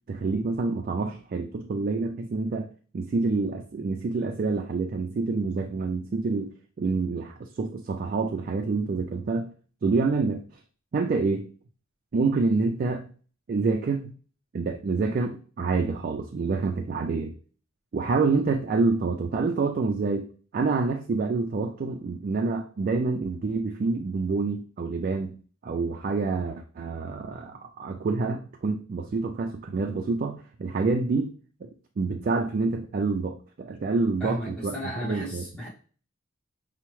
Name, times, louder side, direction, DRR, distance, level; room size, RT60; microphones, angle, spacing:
voice 1, 0.1-2.7 2.9-9.5 9.8-10.4 10.9-11.5 12.1-13.1 13.5-14.1 14.5-17.3 17.9-20.3 20.5-25.4 25.6-31.3 31.6-31.7 32.0-34.7 35.0-35.4, right 3 dB, 40° right, 4 dB, 0.3 m, -27 dB
voice 2, 34.2-35.7, equal, 5° left, -7 dB, 0.8 m, -34 dB
5.6 x 2.1 x 3.0 m, 0.40 s
head